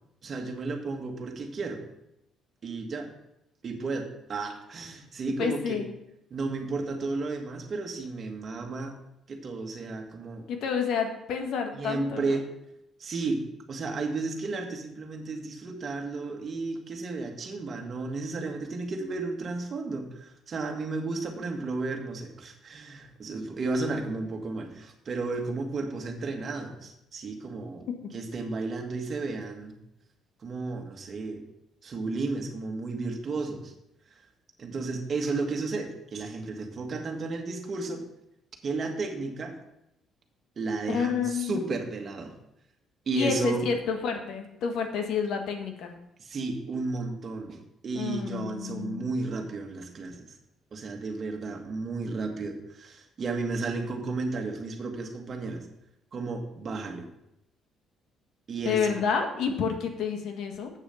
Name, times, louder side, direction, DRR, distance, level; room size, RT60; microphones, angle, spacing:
voice 1, 0.2-1.8 2.6-3.1 3.6-5.8 6.3-8.9 9.3-10.4 11.7-12.4 13.0-13.4 13.7-29.7 30.4-31.4 31.8-33.7 34.1-34.2 34.6-38.0 38.6-39.6 40.5-42.3 43.0-43.6 46.2-50.4 50.7-55.7 56.1-57.1 58.5-59.0, right 3 dB, 40° right, 3 dB, 1.7 m, -33 dB
voice 2, 5.4-5.9 10.5-12.4 40.9-41.6 43.1-45.9 47.9-49.1 58.6-60.7, left 6 dB, 75° left, 4 dB, 1.6 m, -29 dB
8.3 x 6.9 x 5.7 m, 0.84 s
cardioid pair, 120°, 0 cm